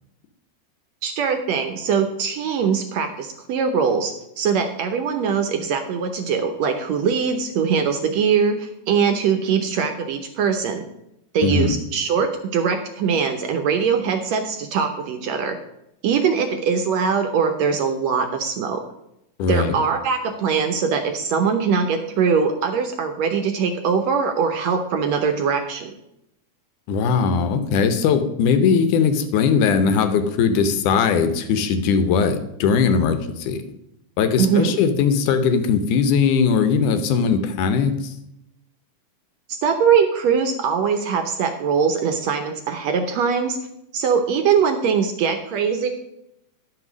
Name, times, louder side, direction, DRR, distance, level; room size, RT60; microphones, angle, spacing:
voice 1, 1.0-10.9 11.3-15.6 16.0-18.8 19.5-25.9 34.4-34.8 39.5-43.6 43.9-45.9, right 6 dB, 70° right, 6 dB, 1.7 m, -22 dB
voice 2, 11.4-11.8 19.4-19.7 26.9-33.6 34.2-38.1, left 6 dB, 80° left, 8 dB, 2.3 m, -19 dB
11.0 x 5.9 x 6.1 m, 0.82 s
omnidirectional pair, 3.7 m